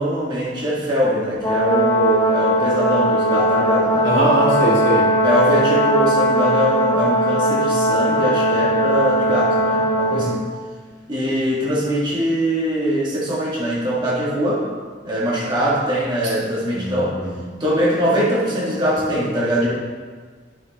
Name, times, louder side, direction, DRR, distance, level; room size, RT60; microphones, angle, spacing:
voice 1, 0.0-4.1 5.2-10.4 11.1-14.6 15.0-17.1 17.6-19.7, equal, 25° right, -7 dB, 1.8 m, -22 dB
Brass instrument, 1.4-10.4, equal, 20° left, 1.2 m, -19 dB
voice 2, 4.0-5.0 10.1-10.3 16.7-17.4, right 1 dB, 80° right, -7 dB, 2.6 m, -21 dB
10.5 x 6.1 x 3.1 m, 1.5 s
head